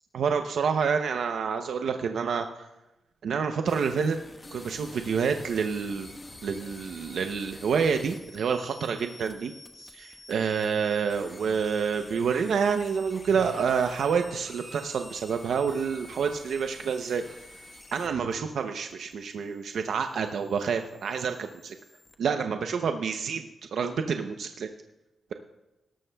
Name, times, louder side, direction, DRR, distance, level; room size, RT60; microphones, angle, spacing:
voice 1, 0.1-2.7 3.2-4.2 4.5-6.1 6.4-9.5 9.9-17.2 17.9-21.8 22.2-24.7, right 6 dB, 75° right, 6 dB, 0.6 m, -28 dB
sound 1, 3.7-22.1, left 2 dB, 30° left, 1.2 m, -49 dB
Livestock farm animals working animals, 11.1-18.4, right 3 dB, 50° right, 4.4 m, -51 dB
18.0 x 12.5 x 2.3 m, 0.98 s
cardioid pair, 105°, 0 cm